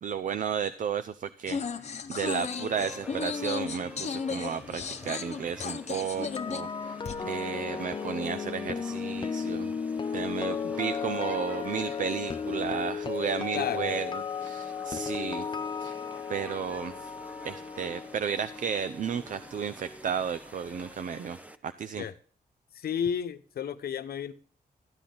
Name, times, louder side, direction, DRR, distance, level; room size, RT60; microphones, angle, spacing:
voice 1, 0.0-1.6 2.1-9.8 10.1-15.5 15.8-16.0 16.3-17.1 17.4-21.4 21.6-22.0, right 7 dB, 55° right, 12 dB, 0.6 m, -33 dB
sound 1, 1.5-7.2, left 5 dB, 45° left, 0.9 m, -35 dB
sound 2, 2.3-21.6, right 1 dB, 10° right, 0.8 m, -48 dB
sound 3, 6.1-20.2 20.5-20.8, left 6 dB, 30° left, 0.5 m, -35 dB
voice 2, 13.5-14.0 22.0-22.1 22.7-24.3, left 8 dB, 80° left, 10 dB, 0.9 m, -32 dB
13.5 x 10.5 x 3.9 m, 0.44 s
wide cardioid pair, 130°, 16 cm